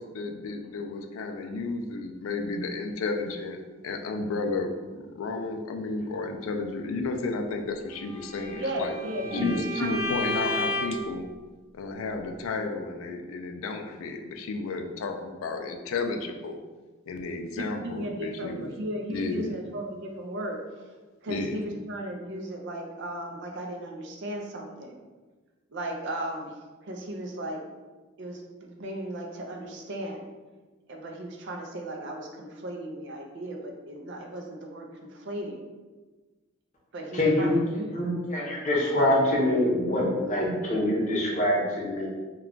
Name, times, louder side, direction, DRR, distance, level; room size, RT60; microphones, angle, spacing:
voice 1, 0.0-8.9 9.3-11.3 11.7-16.6 17.1-18.7 19.1-19.5 21.3-21.6, left 3 dB, 70° left, 5 dB, 0.3 m, -32 dB
Bowed string instrument, 8.1-11.1, left 1 dB, 15° right, 0.9 m, -32 dB
voice 2, 8.5-10.2 17.6-20.8 21.2-25.0 25.7-26.5 26.8-27.6 28.2-30.2 30.9-35.6 36.9-37.9, right 1 dB, 55° right, 2 dB, 0.4 m, -36 dB
voice 3, 37.1-42.1, left 1 dB, 35° left, -4 dB, 0.6 m, -25 dB
2.3 x 2.2 x 3.7 m, 1.3 s
head